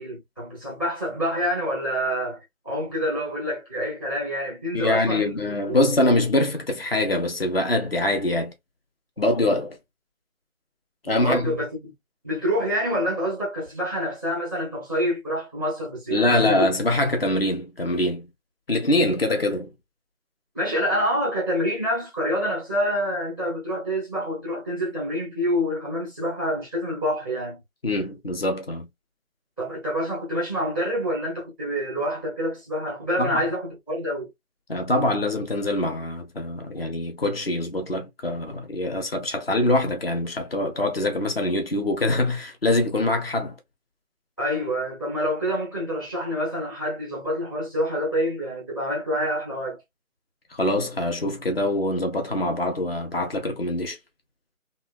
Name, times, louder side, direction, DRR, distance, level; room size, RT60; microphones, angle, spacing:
voice 1, 0.0-2.4 2.6-5.8 11.0-11.9 12.2-16.7 20.5-27.6 29.6-34.3 44.4-49.8, equal, 15° left, 0.8 m, -27 dB
voice 2, 4.7-8.5 9.2-9.8 11.0-11.6 16.1-18.3 18.7-19.7 27.8-28.9 33.2-33.4 34.7-43.6 50.5-54.0, left 1 dB, 45° left, 0.9 m, -24 dB
3.0 x 2.3 x 2.3 m
figure-of-eight pair, 165°, 42 cm